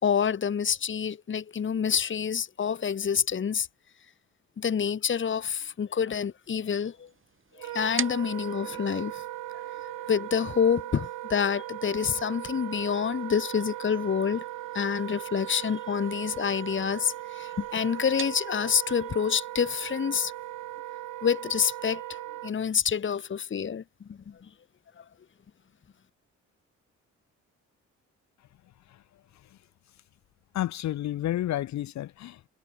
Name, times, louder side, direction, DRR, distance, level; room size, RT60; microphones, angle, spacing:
voice 1, 0.0-3.7 4.6-7.1 7.6-9.2 10.0-14.4 14.7-20.3 21.2-23.8 24.3-24.4 25.0-25.1, left 7 dB, 40° left, 1.8 m, -27 dB
sound 1, 6.4-20.8, right 6 dB, 45° right, 5.6 m, -46 dB
Wind instrument woodwind instrument, 7.5-22.5, right 15 dB, 85° right, 2.9 m, -38 dB
voice 2, 30.5-32.5, left 13 dB, 65° left, 0.8 m, -30 dB
cardioid pair, 90°, 30 cm